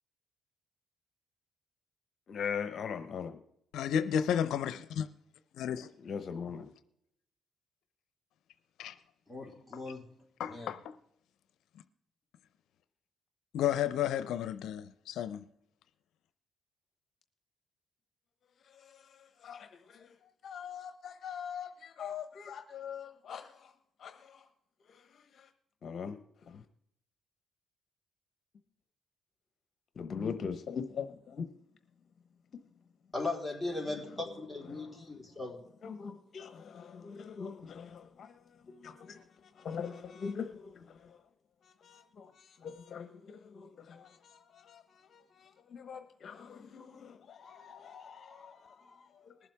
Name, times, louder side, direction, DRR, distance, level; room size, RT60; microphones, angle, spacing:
voice 1, 2.3-3.4 6.0-6.7 18.7-20.1 20.4-23.7 24.0-24.5 24.9-25.5 25.8-26.2 26.5-26.6 30.0-31.5 34.7-34.9 35.8-38.4 38.7-39.2 39.6-41.2 41.6-49.3, left 6 dB, 55° left, 1.0 m, -42 dB
voice 2, 3.7-5.1 5.6-5.9 8.8-8.9 10.4-10.9 13.5-15.4, left 9 dB, 80° left, 0.6 m, -32 dB
voice 3, 9.3-10.0 10.4-10.7 33.1-35.6, left 2 dB, ahead, 4.0 m, -38 dB
21.0 x 7.4 x 3.4 m
cardioid pair, 90°, 0 cm